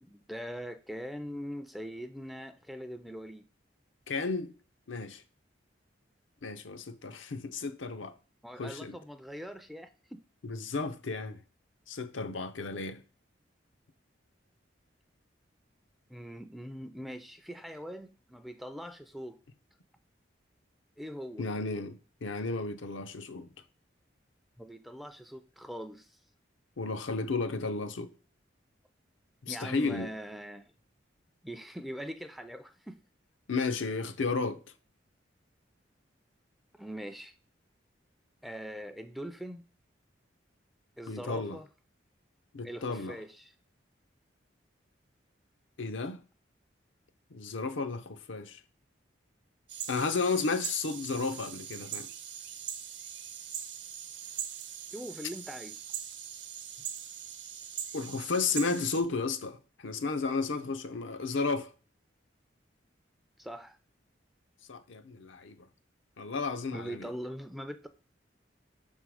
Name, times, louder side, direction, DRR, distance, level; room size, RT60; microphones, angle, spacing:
voice 1, 0.0-3.5 8.4-10.2 16.1-19.4 21.0-21.4 24.6-26.2 29.5-30.7 31.4-33.0 36.7-37.3 38.4-39.6 41.0-41.7 42.6-43.5 54.9-55.8 63.4-63.8 66.6-67.9, equal, ahead, 0.4 m, -42 dB
voice 2, 4.1-4.5 4.9-5.2 6.4-8.1 8.6-9.0 10.4-11.4 11.9-13.0 21.4-23.5 26.8-28.1 29.4-30.1 33.5-34.6 41.1-41.6 42.5-43.2 45.8-46.2 47.3-48.6 49.9-52.1 57.9-61.7 64.7-65.7 66.2-67.1, left 4 dB, 80° left, 0.6 m, -33 dB
sound 1, 49.7-59.0, right 9 dB, 70° right, 0.8 m, -41 dB
5.9 x 3.7 x 4.8 m
head